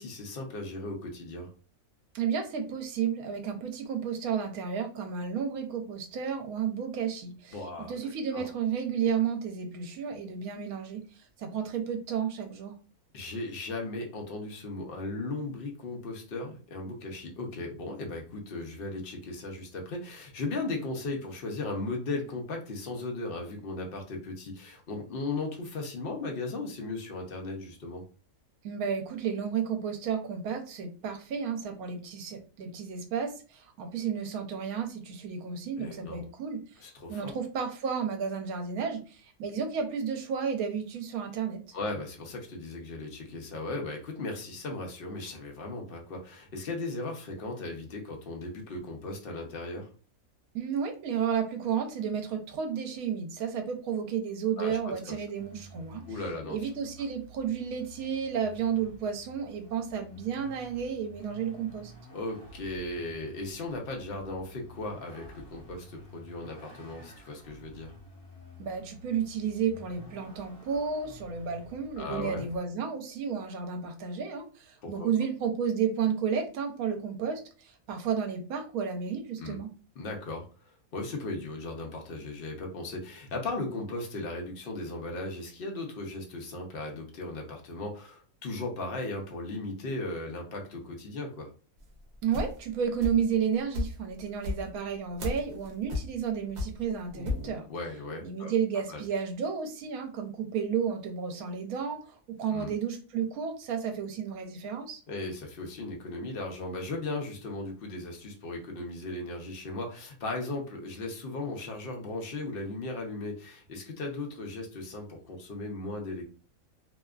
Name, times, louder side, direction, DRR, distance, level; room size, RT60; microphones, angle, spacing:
voice 1, 0.0-1.5 7.5-8.5 13.1-28.0 35.8-36.2 36.8-37.3 41.7-49.9 54.6-55.2 56.1-56.7 62.1-67.9 72.0-72.5 74.8-75.1 79.4-79.6 80.0-91.5 97.1-98.5 98.9-99.0 102.5-102.7 105.1-116.2, left 2 dB, 55° left, 1 dB, 0.6 m, -37 dB
voice 2, 2.1-11.0 11.4-12.8 28.6-36.6 37.1-41.6 50.5-56.0 56.5-61.9 68.6-79.7 92.2-97.6 98.2-105.0, right 7 dB, 80° right, 4 dB, 1.0 m, -32 dB
Vehicle, 55.4-72.6, right 1 dB, 40° left, 1.3 m, -50 dB
sound 1, 91.8-93.4 93.7-97.5, left 3 dB, 60° right, 0.4 m, -34 dB
2.8 x 2.3 x 2.3 m, 0.37 s
omnidirectional pair, 1.6 m